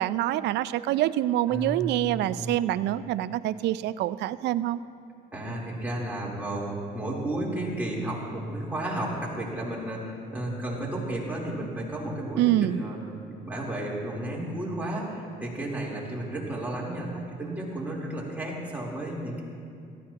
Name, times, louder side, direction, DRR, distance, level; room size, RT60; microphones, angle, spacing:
voice 1, 0.0-4.8 12.4-12.8, right 13 dB, 70° right, 15 dB, 0.4 m, -26 dB
voice 2, 1.5-2.5 5.3-13.0 13.3-19.4, right 1 dB, 10° right, -5 dB, 3.5 m, -33 dB
18.0 x 13.5 x 2.9 m, 2.4 s
cardioid pair, 90°, 18 cm